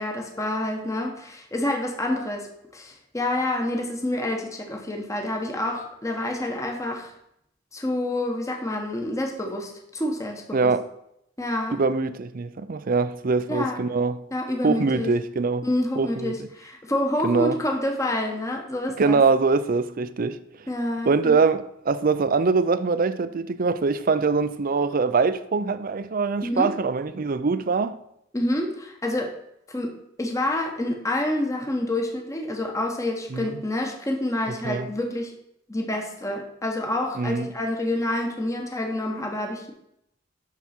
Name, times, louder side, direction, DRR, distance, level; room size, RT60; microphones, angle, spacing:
voice 1, 0.0-2.5 2.7-7.1 7.7-10.7 11.4-11.8 13.5-13.8 14.3-15.1 15.6-19.2 20.7-21.4 26.4-26.7 28.3-29.4 29.7-35.3 35.7-39.7, left 1 dB, 15° left, 1.1 m, -28 dB
voice 2, 10.5-10.9 11.7-14.2 14.6-15.7 16.0-16.3 17.2-17.6 19.0-20.4 21.1-27.9 33.3-33.6 34.6-34.9 37.2-37.5, right 4 dB, 45° right, 0.5 m, -23 dB
8.1 x 6.1 x 4.4 m
head